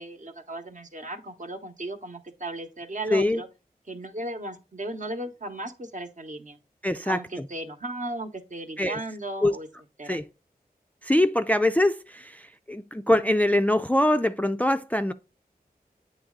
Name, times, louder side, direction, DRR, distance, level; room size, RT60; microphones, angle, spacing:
voice 1, 0.0-3.5 3.9-6.6 7.1-9.7 10.0-10.2, right 2 dB, 55° right, 0.9 m, -36 dB
voice 2, 3.1-3.4 6.8-7.5 8.8-9.0 9.4-9.6 10.0-10.3 11.0-15.1, left 1 dB, 10° left, 0.3 m, -23 dB
8.4 x 3.1 x 3.7 m
wide cardioid pair, 50°, 16 cm